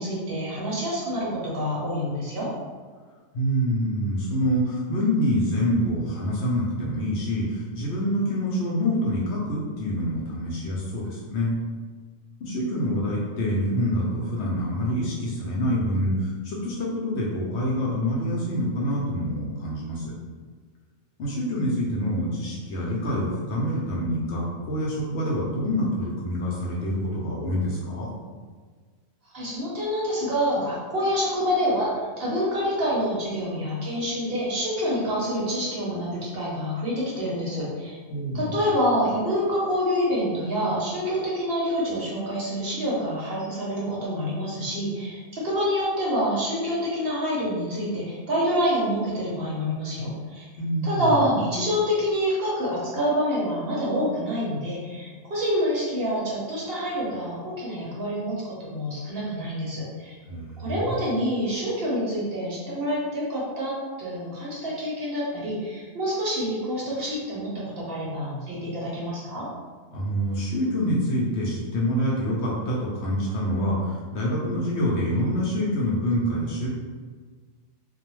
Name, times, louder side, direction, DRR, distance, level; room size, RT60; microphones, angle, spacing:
voice 1, 0.0-2.5 29.3-38.0 38.3-50.4 50.8-60.1 60.6-69.5, equal, 55° right, -6 dB, 0.8 m, -27 dB
voice 2, 3.3-11.5 12.4-20.1 21.2-28.1 38.1-38.6 50.6-51.2 60.3-61.0 69.9-76.7, equal, 65° left, -5 dB, 0.7 m, -26 dB
2.3 x 2.1 x 3.0 m, 1.5 s
omnidirectional pair, 1.3 m